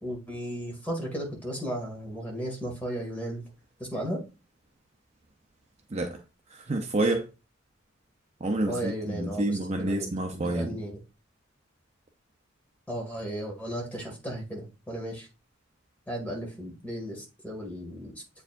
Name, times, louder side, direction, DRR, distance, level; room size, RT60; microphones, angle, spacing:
voice 1, 0.0-3.4 3.8-4.2 8.7-10.9 12.9-15.3 16.1-18.1, equal, 10° left, 2.1 m, -35 dB
voice 2, 5.9-6.2 6.5-7.3 8.4-10.8, right 2 dB, 35° right, 0.6 m, -28 dB
7.9 x 4.7 x 2.5 m
head